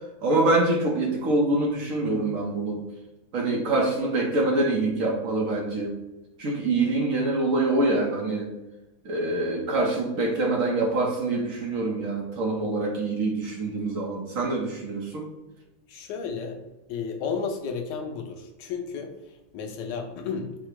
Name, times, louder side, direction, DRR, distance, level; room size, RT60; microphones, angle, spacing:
voice 1, 0.2-2.8 3.3-6.0 6.4-8.5 9.0-15.2, right 2 dB, 55° right, -1 dB, 1.1 m, -25 dB
voice 2, 15.9-16.6 16.9-20.6, left 5 dB, 90° left, 4 dB, 1.3 m, -33 dB
4.8 x 2.1 x 4.6 m, 0.99 s
omnidirectional pair, 1.8 m